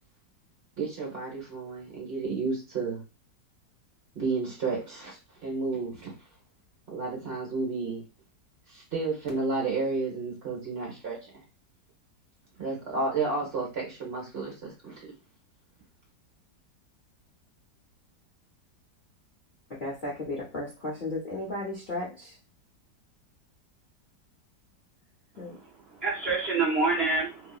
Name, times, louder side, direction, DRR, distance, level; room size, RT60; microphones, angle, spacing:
voice 1, 0.8-3.0 4.1-6.1 6.9-8.0 8.7-11.4 12.6-15.1, right 3 dB, 40° right, -2 dB, 1.2 m, -32 dB
voice 2, 19.8-22.3 25.4-25.5, left 2 dB, 50° left, -5 dB, 0.6 m, -34 dB
voice 3, 25.3-27.6, right 3 dB, 70° right, -5 dB, 0.6 m, -28 dB
2.9 x 2.7 x 2.3 m, 0.30 s
omnidirectional pair, 1.9 m